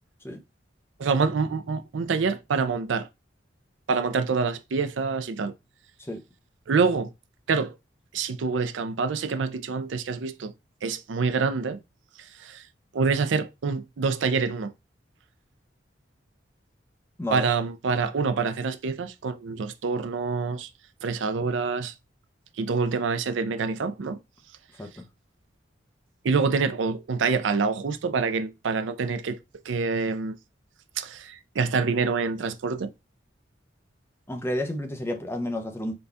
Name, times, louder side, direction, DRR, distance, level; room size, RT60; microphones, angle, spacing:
voice 1, 1.0-3.1 3.9-5.5 6.7-7.1 7.5-7.8 8.1-10.5 10.8-11.8 12.4-12.6 12.9-14.7 17.3-20.7 21.0-21.9 22.6-24.2 26.2-29.4 29.7-30.4 31.0-32.9, right 4 dB, 85° right, 0.5 m, -26 dB
voice 2, 17.2-17.5 24.8-25.1 34.3-36.0, left 1 dB, 15° left, 0.5 m, -31 dB
3.9 x 2.3 x 3.4 m
head